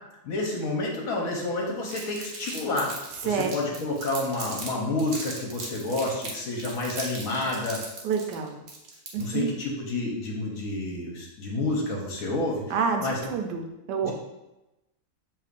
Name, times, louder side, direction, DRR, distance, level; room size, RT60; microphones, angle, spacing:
voice 1, 0.2-2.9 3.2-7.8 9.1-13.2 14.0-14.1, left 2 dB, 60° left, -1 dB, 1.2 m, -29 dB
Crumpling crinkling, 1.9-4.7 5.0-9.4, right 3 dB, 65° right, 1.3 m, -38 dB
voice 2, 3.3-3.6 8.0-8.5 9.1-9.5 12.7-14.1, right 6 dB, 85° right, 3 dB, 1.3 m, -28 dB
6.7 x 3.1 x 2.5 m, 0.97 s
omnidirectional pair, 1.8 m